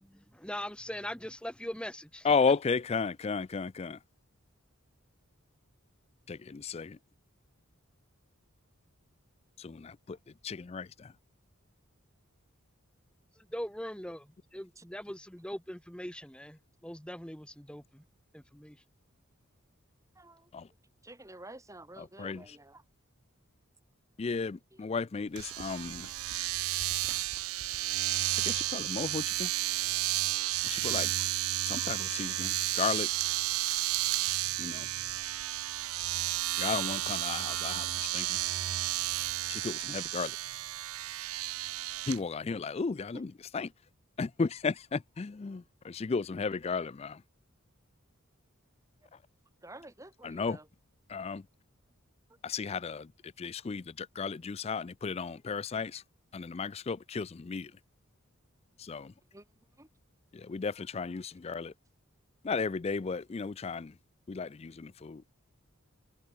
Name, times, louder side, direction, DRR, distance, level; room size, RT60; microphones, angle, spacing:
voice 1, 0.0-2.3 13.3-18.0 18.3-18.8, equal, 5° left, 2.9 m, -41 dB
voice 2, 2.2-4.0 6.3-7.0 9.6-10.2 10.4-11.1 20.5-20.7 22.0-22.6 24.2-26.1 28.4-29.5 30.6-31.1 31.7-33.1 34.6-34.9 36.6-38.4 39.5-40.4 42.1-43.7 44.2-47.2 50.2-50.6 51.1-51.5 52.4-56.0 56.3-57.7 58.8-59.1 60.3-61.7 62.4-64.0 64.3-65.2, left 5 dB, 30° left, 0.3 m, -34 dB
voice 3, 20.2-20.5 21.0-22.8 30.8-31.0 31.7-32.0 32.7-32.9 49.6-50.6 59.3-59.4 59.8-59.9, right 2 dB, 15° right, 2.6 m, -50 dB
Domestic sounds home sounds, 25.4-42.2, right 15 dB, 85° right, 0.7 m, -32 dB
head